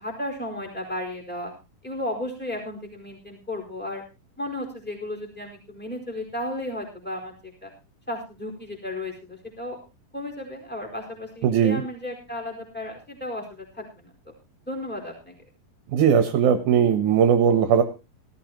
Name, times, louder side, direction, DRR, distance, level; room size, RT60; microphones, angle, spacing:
voice 1, 0.0-1.5 1.8-4.0 4.4-7.7 8.1-9.8 10.1-14.1 14.7-15.4, left 1 dB, 5° left, 0 dB, 4.3 m, -34 dB
voice 2, 11.4-11.8 15.9-17.8, right 8 dB, 70° right, 8 dB, 2.3 m, -19 dB
18.5 x 14.0 x 3.0 m, 0.31 s
omnidirectional pair, 4.0 m